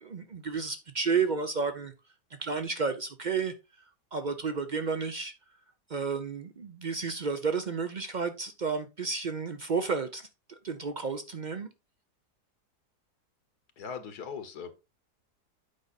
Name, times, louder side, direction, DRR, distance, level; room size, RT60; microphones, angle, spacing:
voice 1, 0.0-1.9 2.4-3.5 4.1-5.3 5.9-11.7, right 5 dB, 70° right, 0.4 m, -31 dB
voice 2, 13.8-14.7, left 6 dB, 70° left, 1.7 m, -39 dB
8.6 x 5.3 x 4.0 m
omnidirectional pair, 1.8 m